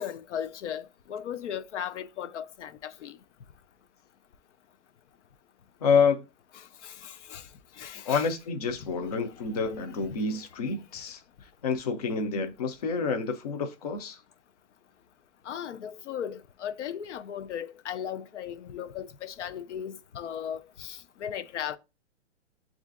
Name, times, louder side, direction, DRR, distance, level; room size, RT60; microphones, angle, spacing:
voice 1, 0.0-3.1 6.8-7.4 7.8-8.3 15.5-21.8, left 9 dB, 90° left, 0.6 m, -37 dB
voice 2, 5.8-6.2 8.1-11.2 11.6-14.2, left 5 dB, 35° left, 0.4 m, -28 dB
7.1 x 2.5 x 2.4 m
hypercardioid pair, 170°, 34 cm